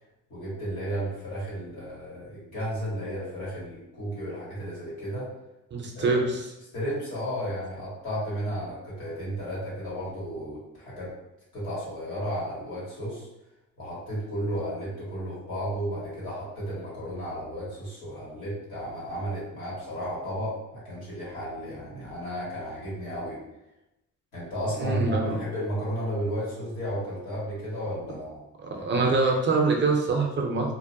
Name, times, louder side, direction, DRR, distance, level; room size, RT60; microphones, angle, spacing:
voice 1, 0.3-5.3 5.9-6.2 6.7-11.1 11.5-13.3 13.8-23.4 24.3-28.4 28.8-29.0, equal, 90° left, -8 dB, 1.5 m, -33 dB
voice 2, 5.7-6.5 24.8-25.4 28.6-30.7, right 3 dB, 40° right, 2 dB, 0.5 m, -24 dB
2.5 x 2.1 x 2.6 m, 0.91 s
cardioid pair, 90°, 30 cm